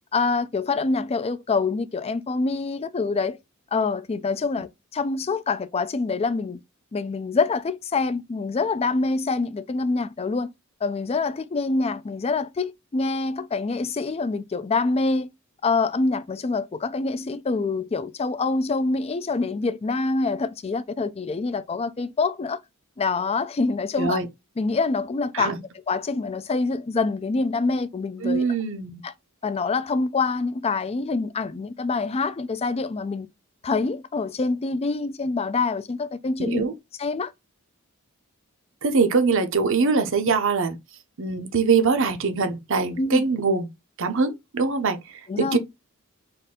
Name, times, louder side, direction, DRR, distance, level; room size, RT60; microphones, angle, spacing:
voice 1, 0.1-3.4 3.7-6.6 6.9-10.5 10.8-15.3 15.6-22.6 23.0-24.2 24.6-25.6 25.9-28.4 29.0-29.1 29.4-33.3 33.6-36.7 37.0-37.3 43.0-43.2 45.3-45.6, left 3 dB, 30° left, 0.4 m, -25 dB
voice 2, 28.2-29.0 36.4-36.7 38.8-40.8 41.2-43.7 44.0-45.0 45.4-45.6, right 4 dB, 65° right, 0.8 m, -23 dB
4.2 x 2.6 x 3.7 m
head